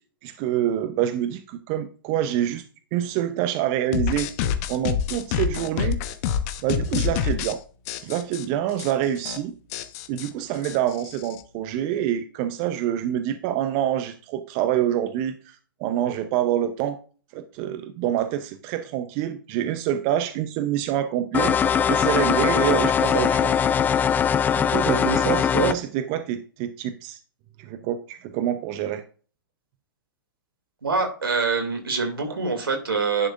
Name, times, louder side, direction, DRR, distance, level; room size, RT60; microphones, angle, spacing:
voice 1, 0.2-2.6 2.9-4.3 4.7-6.0 6.6-7.6 8.0-9.5 10.1-17.0 17.3-21.6 21.9-23.6 24.5-27.2 27.6-29.0, right 11 dB, 40° right, 11 dB, 0.7 m, -26 dB
sound 1, 3.9-7.5 7.9-8.4 8.8-8.9 9.2-9.4 9.7-11.4, left 8 dB, 45° left, 1.0 m, -27 dB
sound 2, 21.3-25.7, left 8 dB, 15° left, 0.4 m, -21 dB
voice 2, 30.8-33.3, right 4 dB, 85° right, 5 dB, 2.6 m, -25 dB
10.5 x 6.2 x 2.5 m, 0.39 s
hypercardioid pair, 120°, 12 cm